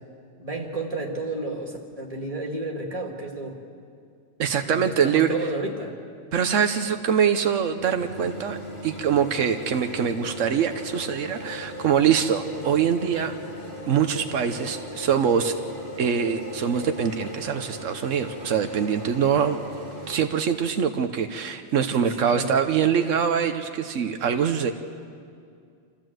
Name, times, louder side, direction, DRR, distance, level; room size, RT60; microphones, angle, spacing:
voice 1, 0.4-3.6 4.7-6.0 22.0-22.5, right 2 dB, 30° right, 0 dB, 2.5 m, -32 dB
voice 2, 4.4-5.3 6.3-8.6 8.8-13.3 13.9-15.5 16.0-19.6 20.1-24.7, right 7 dB, 85° right, 7 dB, 1.2 m, -23 dB
sound 1, 7.7-20.2, equal, 50° left, 3.9 m, -38 dB
27.0 x 14.5 x 7.7 m, 2.3 s
omnidirectional pair, 1.3 m